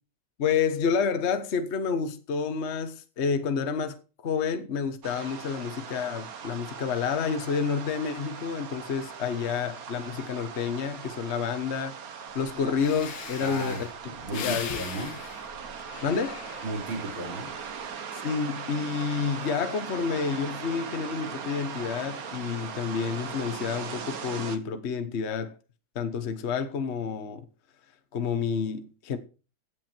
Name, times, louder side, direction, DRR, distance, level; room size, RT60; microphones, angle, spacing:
voice 1, 0.4-4.0 4.2-11.9 12.3-13.9 14.4-14.8 16.0-16.4 18.1-25.6 25.9-27.4 28.1-29.2, left 6 dB, 40° left, 1.1 m, -29 dB
sound 1, 5.0-24.6, right 7 dB, 50° right, 1.4 m, -39 dB
Breathing, 12.4-12.5 12.8-17.0 17.5-17.9, left 7 dB, 65° left, 1.9 m, -39 dB
voice 2, 13.4-15.2 16.6-17.5, right 1 dB, 70° right, 4.6 m, -35 dB
15.5 x 8.4 x 4.5 m
omnidirectional pair, 2.3 m